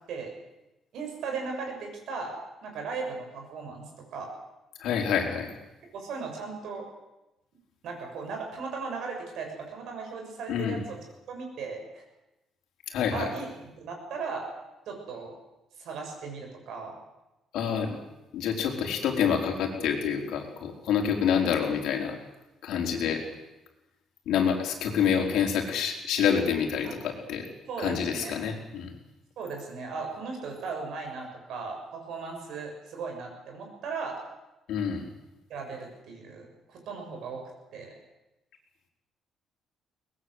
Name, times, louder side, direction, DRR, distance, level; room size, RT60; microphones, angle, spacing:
voice 1, 0.9-2.3 2.6-4.3 5.9-6.9 7.8-11.0 11.3-12.0 13.1-13.5 13.8-14.5 14.9-15.4 15.8-17.0 26.8-26.9 27.6-28.4 29.4-34.2 35.5-37.4 37.7-37.9, right 4 dB, 60° right, 2 dB, 7.3 m, -37 dB
voice 2, 4.8-5.5 10.5-10.8 12.9-13.3 17.5-18.0 18.3-22.2 22.6-23.2 24.3-27.4 27.8-28.9 34.7-35.1, left 7 dB, 65° left, 2 dB, 4.5 m, -27 dB
23.0 x 20.0 x 8.1 m, 0.99 s
cardioid pair, 180°, 0 cm